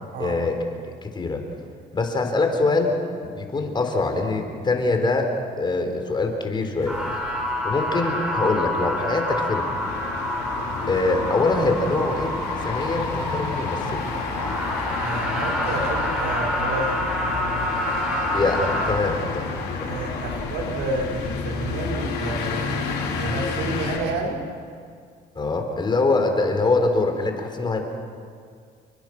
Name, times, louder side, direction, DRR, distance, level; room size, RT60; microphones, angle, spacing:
voice 1, 0.2-0.6 1.0-1.4 1.9-2.9 3.2-7.0 7.6-9.7 10.9-12.4 12.6-14.0 18.3-19.9 25.4-27.8, left 3 dB, 25° left, 4 dB, 4.1 m, -24 dB
sound 1, 6.8-24.0, left 5 dB, 90° left, 5.8 m, -31 dB
sound 2, 6.9-18.9, equal, 5° right, 6.1 m, -28 dB
voice 2, 15.0-17.1 19.8-24.4, right 2 dB, 85° right, 0 dB, 5.0 m, -30 dB
29.5 x 23.5 x 6.1 m, 2.1 s
cardioid pair, 120°, 18 cm